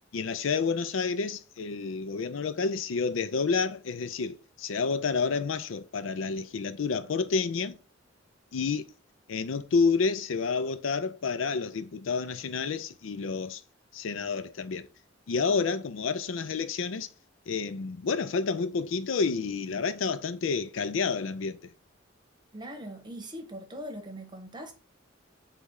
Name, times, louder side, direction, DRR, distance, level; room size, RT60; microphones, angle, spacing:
voice 1, 0.1-7.8 8.5-8.9 9.3-13.6 13.9-14.9 15.3-17.1 17.5-21.6, left 5 dB, 85° left, 0.5 m, -29 dB
voice 2, 22.5-24.7, equal, 25° right, 1.0 m, -41 dB
4.1 x 3.4 x 3.6 m
head